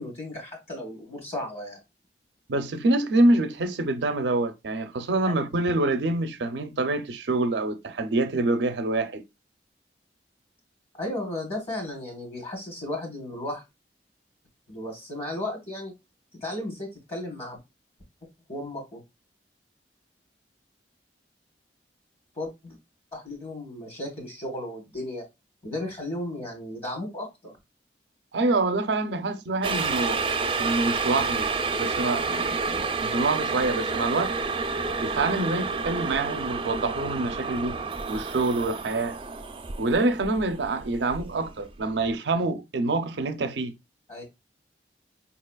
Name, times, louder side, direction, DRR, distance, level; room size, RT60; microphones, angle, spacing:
voice 1, 0.0-1.8 10.9-13.6 14.7-15.9 16.4-17.6 18.5-19.0 22.4-22.8 23.1-25.2 25.6-27.5 44.1-44.3, left 1 dB, 35° left, 1.3 m, -34 dB
voice 2, 2.5-9.2 28.3-30.2 30.6-31.5 31.8-34.3 35.0-37.8 38.1-39.2 39.8-43.7, right 2 dB, 80° right, 0.5 m, -26 dB
sound 1, 29.6-41.7 42.1-42.2, right 4 dB, 30° right, 0.4 m, -29 dB
4.6 x 2.9 x 2.3 m
head